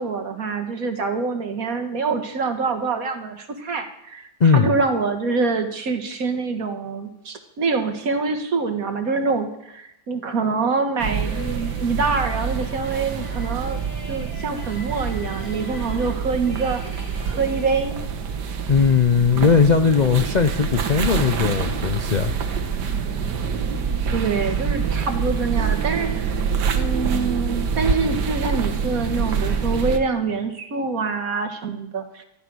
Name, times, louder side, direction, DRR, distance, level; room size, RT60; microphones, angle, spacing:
voice 1, 0.0-4.3 4.5-13.8 14.1-16.8 17.3-18.0 24.1-26.4 26.8-32.2, right 4 dB, 60° right, 7 dB, 1.9 m, -25 dB
voice 2, 4.4-4.7 18.7-22.3, left 5 dB, 70° left, 9 dB, 0.4 m, -18 dB
sound 1, 11.0-30.0, right 6 dB, 85° right, 1.8 m, -26 dB
sound 2, 11.1-17.7, left 1 dB, 30° left, 3.8 m, -42 dB
13.5 x 13.0 x 6.2 m, 0.80 s
omnidirectional pair, 1.8 m